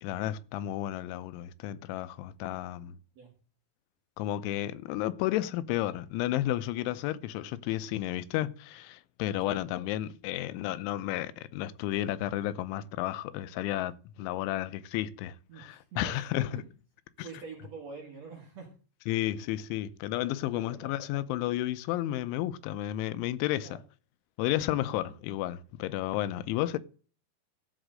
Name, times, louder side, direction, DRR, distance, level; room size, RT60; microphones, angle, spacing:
voice 1, 0.0-3.0 4.2-16.6 19.1-23.8 24.4-26.8, left 14 dB, 90° left, 3.1 m, -32 dB
voice 2, 15.5-16.7 17.2-18.7 20.5-21.0 23.6-23.8 24.9-25.2, right 5 dB, 55° right, 2.0 m, -46 dB
15.0 x 5.2 x 6.4 m
omnidirectional pair, 5.3 m